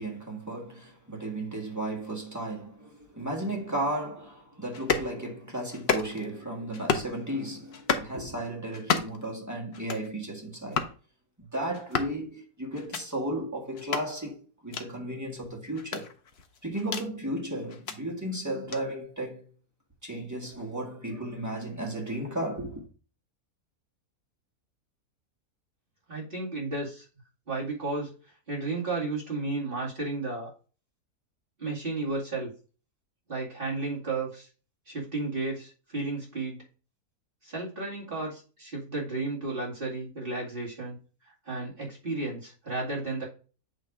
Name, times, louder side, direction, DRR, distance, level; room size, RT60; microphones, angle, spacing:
voice 1, 0.0-10.9 11.4-16.1 16.6-19.4 20.0-22.8, right 1 dB, 10° right, 1.7 m, -34 dB
sound 1, 4.7-5.1 5.7-6.3 6.7-7.1 7.7-8.1 8.7-9.2 9.7-10.1 10.7-10.9 11.7-12.2 12.7-13.0 13.7-14.1 14.7-14.9 15.7-17.1 17.7-18.0 18.7-18.8, left 6 dB, 50° left, 0.9 m, -30 dB
voice 2, 26.1-27.1 27.5-28.1 28.5-30.5 31.6-32.5 33.3-34.5 34.9-36.6 37.4-41.0 41.5-43.3, right 3 dB, 35° right, 2.5 m, -33 dB
8.2 x 3.3 x 4.9 m
omnidirectional pair, 1.6 m